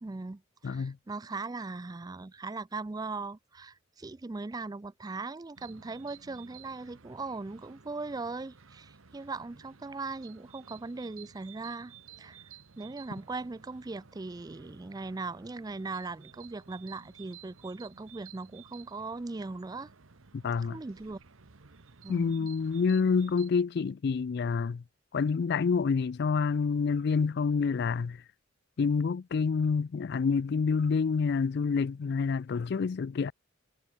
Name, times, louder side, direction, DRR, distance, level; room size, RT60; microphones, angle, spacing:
voice 1, 0.0-12.4 12.8-19.9 20.7-21.2 22.0-22.4, right 3 dB, 20° right, 0.4 m, -39 dB
voice 2, 0.6-1.0 20.3-20.8 22.1-24.8 25.1-28.2 28.8-33.3, left 5 dB, 55° left, 0.4 m, -28 dB
sound 1, 5.6-23.5, right 7 dB, 85° right, 1.2 m, -54 dB
head